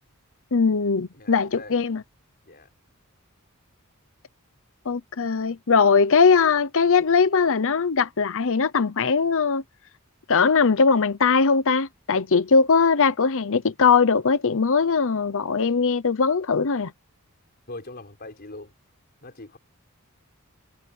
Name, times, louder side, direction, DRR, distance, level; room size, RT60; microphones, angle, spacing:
voice 1, 0.5-2.0 4.9-9.6 10.3-16.9, left 5 dB, 65° left, 0.8 m, -20 dB
voice 2, 1.1-1.9 2.5-2.7 17.7-18.7 19.2-19.6, left 2 dB, 45° left, 4.9 m, -41 dB
head